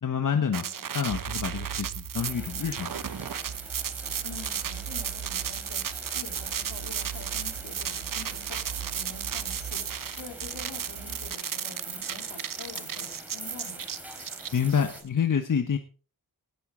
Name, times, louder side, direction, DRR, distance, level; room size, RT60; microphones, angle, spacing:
voice 1, 0.0-0.6 0.9-2.9 14.5-15.8, left 7 dB, 50° left, 7 dB, 1.4 m, -27 dB
sound 1, 0.5-15.0, right 8 dB, 55° right, 0.9 m, -34 dB
sound 2, 1.1-11.3, right 8 dB, 70° right, 1.7 m, -42 dB
sound 3, 2.1-15.0, equal, 5° right, 3.7 m, -45 dB
voice 2, 4.2-13.8, left 5 dB, 80° left, 3 dB, 3.9 m, -46 dB
19.5 x 8.5 x 3.9 m, 0.37 s
cardioid pair, 65°, 39 cm